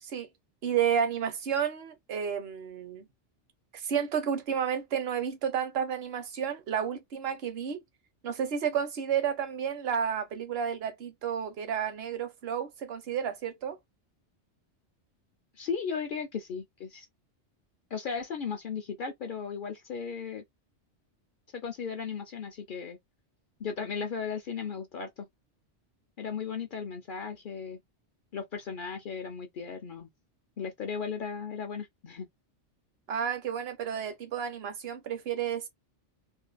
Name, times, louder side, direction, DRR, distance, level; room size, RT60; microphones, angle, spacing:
voice 1, 0.6-3.0 3.7-7.8 8.2-13.8 33.1-35.7, right 8 dB, 60° right, 0.9 m, -31 dB
voice 2, 15.5-17.1 17.9-20.4 21.5-23.0 23.6-25.3 26.2-27.8 28.3-30.1 30.6-32.3, left 6 dB, 60° left, 0.6 m, -36 dB
2.6 x 2.2 x 2.2 m
omnidirectional pair, 1.2 m